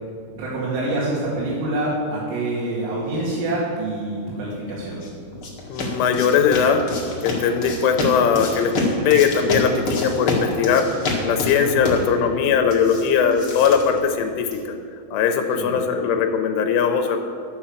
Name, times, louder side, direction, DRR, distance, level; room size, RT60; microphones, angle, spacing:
voice 1, 0.4-5.0 11.6-12.0 15.6-15.8, right 2 dB, 85° right, -8 dB, 5.1 m, -26 dB
sound 1, 4.7-14.7, left 2 dB, 65° left, 1.3 m, -28 dB
voice 2, 5.7-6.8 7.2-8.7 9.1-10.9 11.2-14.5 15.1-17.2, left 7 dB, 85° left, 6 dB, 3.2 m, -19 dB
12.0 x 8.6 x 7.2 m, 2.3 s
omnidirectional pair, 5.7 m